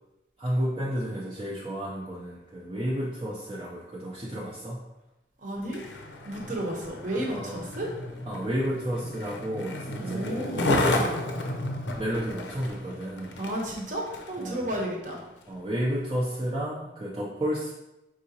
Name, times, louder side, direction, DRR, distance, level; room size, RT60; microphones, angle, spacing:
voice 1, 0.4-4.8 7.3-7.6 8.3-11.0 12.0-13.4 14.4-14.8 15.5-17.7, equal, 25° right, -6 dB, 0.5 m, -32 dB
voice 2, 5.4-5.8 6.2-7.9 10.0-10.7 13.4-15.2, right 1 dB, 45° right, -1 dB, 0.9 m, -32 dB
Skateboard, 5.6-14.4 15.0-15.2, left 1 dB, 80° left, 0.6 m, -32 dB
4.8 x 3.8 x 2.8 m, 0.95 s
head